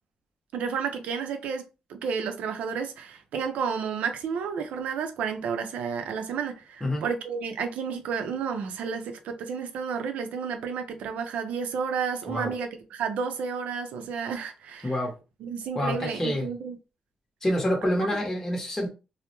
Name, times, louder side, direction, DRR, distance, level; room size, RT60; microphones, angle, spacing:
voice 1, 0.5-14.9 15.4-16.8, right 6 dB, 85° right, 0.4 m, -31 dB
voice 2, 15.7-16.5 17.4-18.9, left 1 dB, 15° left, 0.8 m, -27 dB
2.2 x 2.0 x 2.9 m
cardioid pair, 80°, 2 cm